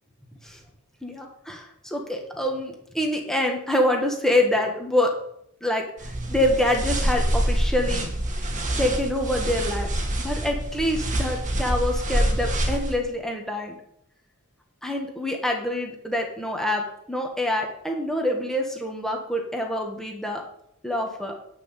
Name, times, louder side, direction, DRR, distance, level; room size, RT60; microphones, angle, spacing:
voice 1, 1.0-5.1 5.6-5.9 6.3-8.1 8.8-9.9 10.2-13.8 14.8-20.4 20.8-21.4, left 1 dB, ahead, 1 dB, 1.8 m, -26 dB
sound 1, 6.0-13.0, right 1 dB, 35° right, 1.9 m, -26 dB
9.6 x 6.1 x 7.3 m, 0.72 s
head